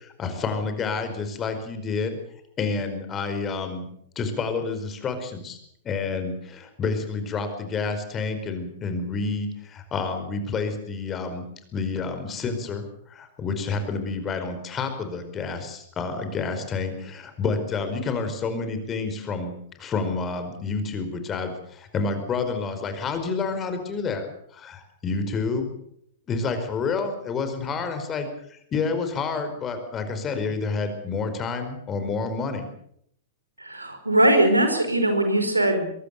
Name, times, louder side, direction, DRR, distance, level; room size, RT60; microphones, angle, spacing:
voice 1, 0.0-2.2 2.6-3.9 4.1-5.6 5.8-11.4 11.7-19.5 19.8-24.3 24.5-25.7 26.3-32.7, left 4 dB, 25° left, 8 dB, 5.0 m, -29 dB
voice 2, 33.6-35.9, right 1 dB, 85° right, 6 dB, 5.0 m, -20 dB
23.5 x 22.0 x 6.9 m, 0.71 s
figure-of-eight pair, 100°, 0 cm